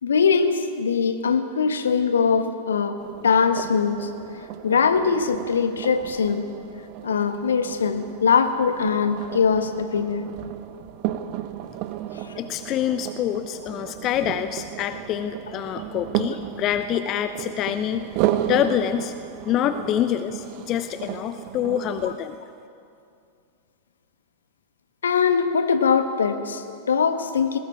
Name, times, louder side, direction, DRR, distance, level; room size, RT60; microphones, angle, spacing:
voice 1, 0.0-4.1 4.6-6.5 7.0-10.3 25.0-27.6, left 6 dB, 70° left, 9 dB, 1.4 m, -22 dB
sound 1, 3.0-22.2, right 12 dB, 45° right, 0.9 m, -33 dB
voice 2, 12.4-18.1 18.5-19.1 19.4-22.4, left 10 dB, 35° left, 11 dB, 0.8 m, -26 dB
20.5 x 18.5 x 8.5 m, 2.4 s
figure-of-eight pair, 90°, 0 cm